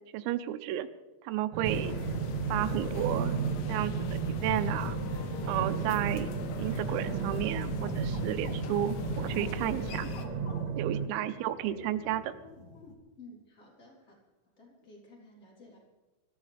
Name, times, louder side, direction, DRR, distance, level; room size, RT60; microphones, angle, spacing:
voice 1, 0.1-0.9 1.3-1.9 2.5-3.4 3.7-3.9 4.3-5.0 5.5-6.3 6.6-10.1 10.8-12.3, right 13 dB, 90° right, 9 dB, 3.4 m, -32 dB
sound 1, 1.5-11.1, right 7 dB, 70° right, 3.1 m, -34 dB
sound 2, 1.6-10.3, left 7 dB, 80° left, 3.6 m, -38 dB
sound 3, 4.5-12.9, left 4 dB, 65° left, 2.4 m, -50 dB
voice 2, 13.2-14.2 14.6-15.8, left 2 dB, 20° left, -3 dB, 3.3 m, -53 dB
26.0 x 14.5 x 3.4 m, 1.2 s
omnidirectional pair, 5.8 m